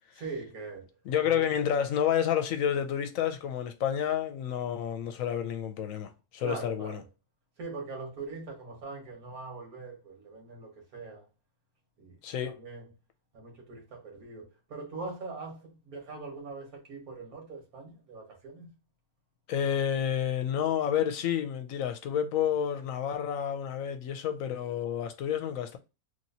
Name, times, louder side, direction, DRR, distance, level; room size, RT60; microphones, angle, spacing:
voice 1, 0.2-0.9 1.2-1.5 6.4-7.0 7.6-11.2 12.0-12.9 13.3-18.7, right 3 dB, 75° right, 1.6 m, -42 dB
voice 2, 1.1-7.0 12.2-12.6 19.5-25.8, left 9 dB, 70° left, 0.9 m, -30 dB
3.1 x 2.9 x 2.6 m
omnidirectional pair, 1.5 m